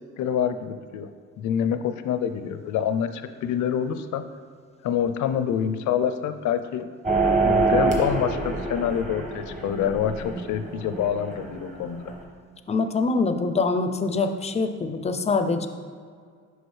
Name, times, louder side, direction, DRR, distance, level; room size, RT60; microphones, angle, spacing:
voice 1, 0.2-1.1 1.4-4.2 4.8-6.9 7.4-12.1, left 8 dB, 75° left, 10 dB, 0.5 m, -26 dB
sound 1, 7.0-12.2, right 3 dB, 25° right, 1.2 m, -26 dB
voice 2, 12.7-15.7, left 4 dB, 20° left, 8 dB, 0.4 m, -24 dB
6.2 x 5.0 x 3.2 m, 2.1 s
cardioid pair, 90°, 30 cm